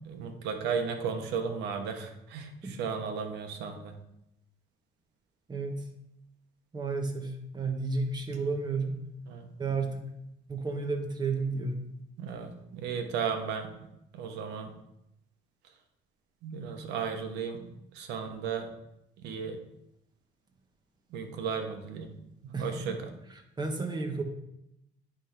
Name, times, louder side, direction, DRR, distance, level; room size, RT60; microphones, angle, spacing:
voice 1, 0.0-3.9 9.3-9.5 12.2-13.7 14.1-14.7 16.4-17.7 17.9-18.7 19.2-19.6 21.1-22.1 22.4-23.1, right 6 dB, 85° right, 5 dB, 1.2 m, -35 dB
voice 2, 5.5-5.8 6.7-9.0 9.6-10.0 10.5-11.9 22.5-23.0 23.3-24.2, right 3 dB, 25° right, 3 dB, 1.4 m, -32 dB
9.7 x 3.6 x 5.9 m, 0.83 s
cardioid pair, 110°, 17 cm